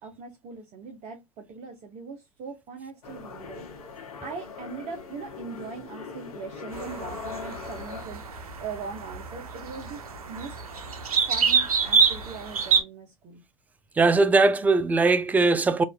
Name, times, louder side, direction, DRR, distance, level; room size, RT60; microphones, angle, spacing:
voice 1, 0.0-8.2 8.6-10.6 11.3-13.4, right 5 dB, 35° right, 0.8 m, -40 dB
sound 1, 3.0-8.0, left 5 dB, 70° left, 1.1 m, -40 dB
sound 2, 6.7-12.8, right 6 dB, 80° right, 0.8 m, -26 dB
voice 2, 14.0-15.8, right 3 dB, 10° right, 0.3 m, -20 dB
4.0 x 2.5 x 2.2 m
hypercardioid pair, 95°, 19 cm